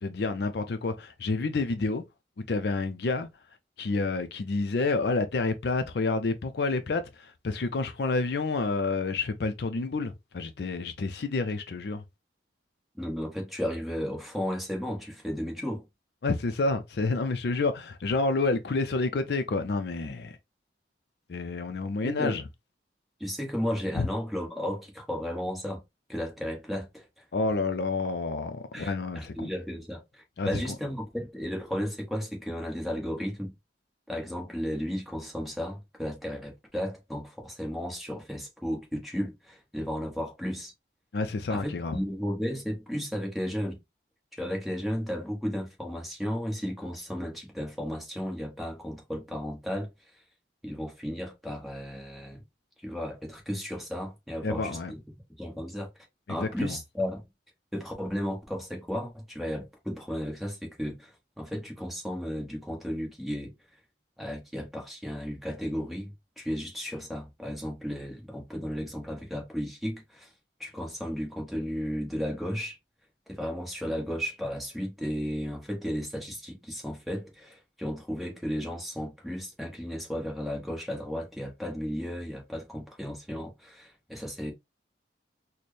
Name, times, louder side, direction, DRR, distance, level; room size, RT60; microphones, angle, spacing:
voice 1, 0.0-2.0 2.4-3.3 3.8-12.0 16.2-20.4 21.3-22.4 24.0-24.1 27.3-29.5 30.4-30.6 41.1-42.0 54.4-54.9 56.3-56.8, left 3 dB, 60° left, 0.4 m, -29 dB
voice 2, 12.9-15.8 22.0-22.4 23.2-25.8 26.1-27.2 28.7-33.5 34.1-40.7 41.5-43.8 44.3-49.9 50.6-52.4 52.8-55.0 55.4-55.9 56.3-57.2 57.7-63.5 64.2-70.3 70.6-72.8 73.3-84.5, equal, ahead, 1.0 m, -34 dB
4.2 x 2.1 x 3.2 m
head